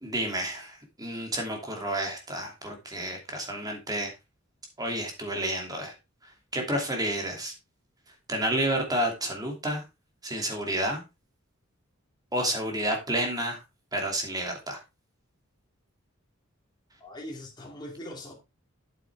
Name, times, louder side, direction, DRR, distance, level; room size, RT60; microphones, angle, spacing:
voice 1, 0.0-4.1 4.8-5.9 6.2-7.5 8.3-9.8 10.2-11.0 12.3-13.6 13.9-14.8, right 1 dB, 20° right, 2.6 m, -30 dB
voice 2, 17.0-18.3, left 1 dB, 20° left, 2.4 m, -41 dB
8.4 x 8.2 x 3.5 m
head